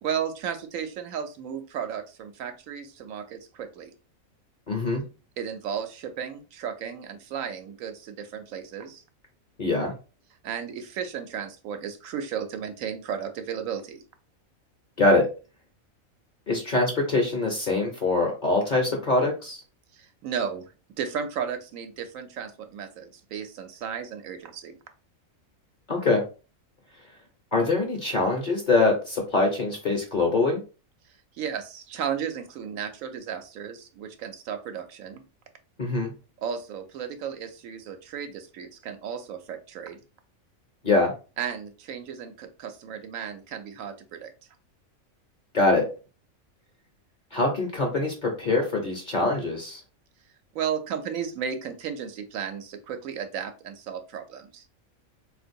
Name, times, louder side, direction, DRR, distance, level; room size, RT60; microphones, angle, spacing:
voice 1, 0.0-3.9 5.4-9.0 10.4-14.0 19.9-20.7 21.0-24.8 31.4-35.2 36.4-40.0 41.4-44.3 50.5-54.6, right 7 dB, 75° right, 7 dB, 1.0 m, -34 dB
voice 2, 4.7-5.0 9.6-9.9 15.0-15.3 16.5-19.6 25.9-26.2 27.5-30.6 35.8-36.1 40.8-41.1 45.5-45.8 47.3-49.8, left 2 dB, 45° left, 2 dB, 0.7 m, -23 dB
3.6 x 2.5 x 2.6 m, 0.33 s
omnidirectional pair, 1.4 m